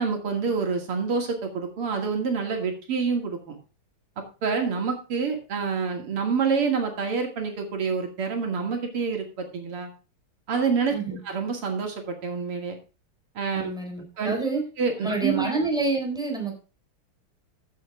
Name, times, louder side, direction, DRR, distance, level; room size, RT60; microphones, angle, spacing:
voice 1, 0.0-3.6 4.2-9.9 10.5-12.8 13.3-13.7 14.2-14.4 14.8-15.5, right 5 dB, 85° right, 3 dB, 3.2 m, -27 dB
voice 2, 13.5-14.6 15.0-16.5, right 3 dB, ahead, 1 dB, 4.0 m, -27 dB
14.5 x 7.7 x 3.5 m, 0.32 s
omnidirectional pair, 2.4 m